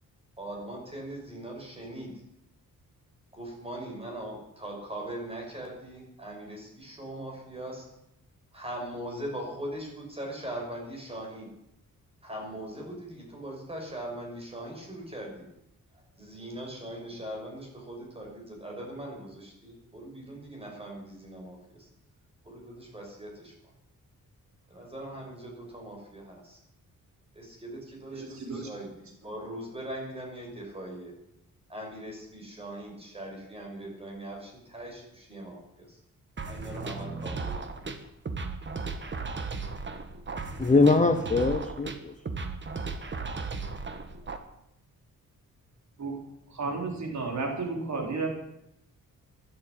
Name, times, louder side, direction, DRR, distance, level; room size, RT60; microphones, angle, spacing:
voice 1, 0.4-2.1 3.3-7.9 8.5-11.5 12.2-15.5 16.2-21.9 22.4-23.5 24.7-26.6 27.3-31.1 31.7-36.0 36.4-37.7, right 1 dB, 15° right, 0 dB, 6.0 m, -40 dB
voice 2, 28.1-28.7 46.0-46.2 46.5-48.3, right 3 dB, 55° right, 2 dB, 3.4 m, -32 dB
sound 1, 36.4-44.4, right 4 dB, 35° right, 1.4 m, -36 dB
voice 3, 40.6-42.1, left 3 dB, 20° left, 7 dB, 1.0 m, -22 dB
14.0 x 11.5 x 8.6 m, 0.81 s
wide cardioid pair, 160°, 33 cm